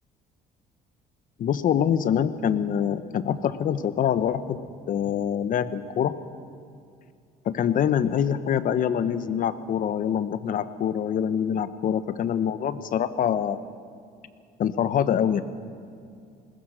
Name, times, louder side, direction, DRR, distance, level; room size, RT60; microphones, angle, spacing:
voice 1, 1.4-4.6 4.9-6.1 7.4-13.6 14.6-15.4, left 9 dB, 55° left, 12 dB, 1.1 m, -25 dB
20.5 x 20.5 x 6.5 m, 2.3 s
cardioid pair, 110°, 17 cm